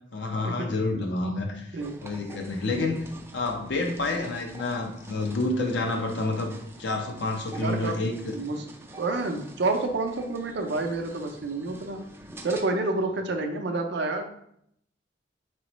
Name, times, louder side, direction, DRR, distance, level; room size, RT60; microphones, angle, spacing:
voice 1, 0.1-3.0 3.3-6.5 6.8-8.4, left 2 dB, 65° left, 3 dB, 0.7 m, -29 dB
sound 1, 1.8-12.6, right 1 dB, 15° right, 0.3 m, -47 dB
voice 2, 7.5-8.6 9.0-12.0 12.4-14.3, right 3 dB, 65° right, 4 dB, 0.5 m, -29 dB
4.0 x 3.1 x 3.0 m, 0.71 s
head